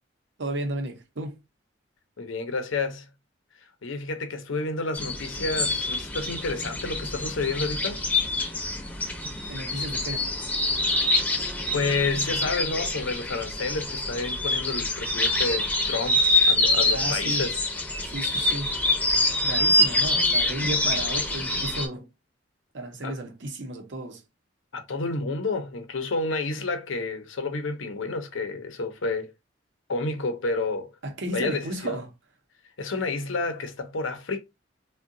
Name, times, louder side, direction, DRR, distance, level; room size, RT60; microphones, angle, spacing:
voice 1, 0.4-1.4 9.5-10.3 16.9-17.5 18.0-18.8 19.4-22.1 22.7-24.2 31.0-32.1, right 1 dB, 65° right, 0.7 m, -33 dB
voice 2, 2.2-3.0 3.8-8.0 11.7-17.6 23.0-23.1 24.7-29.3 29.9-30.9 31.3-32.0 32.8-34.4, left 3 dB, 85° left, 0.7 m, -30 dB
sound 1, 4.9-21.9, left 2 dB, 10° left, 0.7 m, -25 dB
3.6 x 2.2 x 2.5 m
head